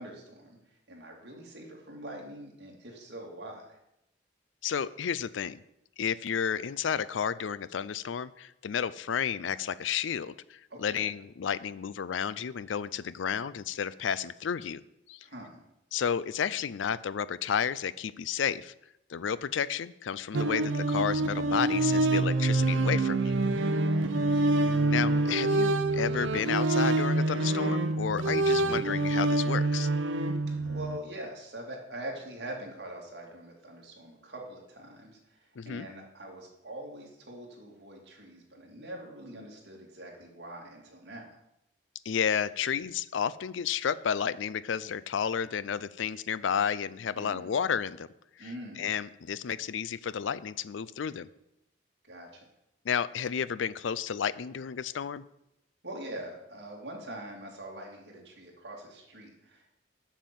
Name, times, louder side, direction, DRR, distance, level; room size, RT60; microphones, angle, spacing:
voice 1, 0.0-3.8 10.7-11.1 15.2-15.6 23.8-24.3 30.5-41.3 47.2-47.5 48.4-48.9 52.0-52.4 55.8-59.7, right 1 dB, 60° right, -1 dB, 2.6 m, -44 dB
voice 2, 4.6-5.6 6.0-14.8 15.1-15.2 15.9-18.7 19.1-23.4 24.9-29.9 35.6-35.9 42.1-48.1 48.4-48.5 48.8-51.3 52.8-55.2, left 7 dB, 85° left, 18 dB, 0.4 m, -32 dB
sound 1, 20.3-31.0, right 2 dB, 90° right, 0.7 m, -26 dB
7.5 x 7.4 x 7.0 m, 0.83 s
head